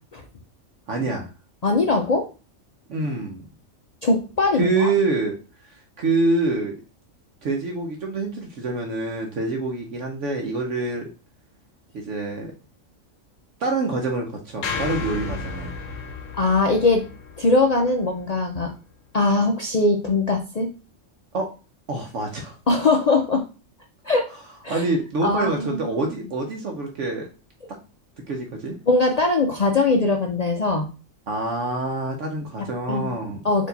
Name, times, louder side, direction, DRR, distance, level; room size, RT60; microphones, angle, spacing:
voice 1, 0.9-1.3 2.9-3.5 4.5-6.8 7.4-11.1 11.9-12.5 13.6-15.7 21.3-21.5 21.9-22.6 24.7-27.3 27.7-27.8 28.3-28.8 31.3-33.4, right 3 dB, 65° right, 2 dB, 1.1 m, -26 dB
voice 2, 1.6-2.2 4.0-4.9 16.3-17.0 17.4-18.7 19.1-20.7 22.7-23.4 24.0-24.3 24.6-24.8 25.2-25.8 28.9-30.9 32.9-33.1 33.4-33.7, left 3 dB, 55° left, 2 dB, 0.4 m, -21 dB
sound 1, 14.6-18.9, left 4 dB, 75° left, 1.1 m, -33 dB
4.5 x 2.9 x 4.0 m, 0.33 s
omnidirectional pair, 1.4 m